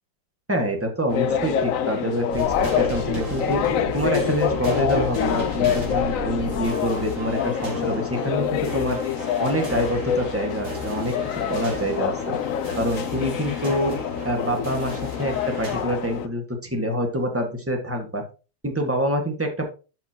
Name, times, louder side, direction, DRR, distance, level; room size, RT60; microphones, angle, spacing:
voice 1, 0.5-2.4 2.8-3.6 3.9-9.0 9.4-12.3 12.8-13.9 14.2-18.2 18.6-19.7, equal, 10° right, 3 dB, 1.4 m, -26 dB
sound 1, 1.1-16.3, left 9 dB, 75° left, 0.7 m, -26 dB
sound 2, 2.3-15.8, equal, 75° right, 3.5 m, -34 dB
11.5 x 6.0 x 2.9 m, 0.33 s
omnidirectional pair, 2.1 m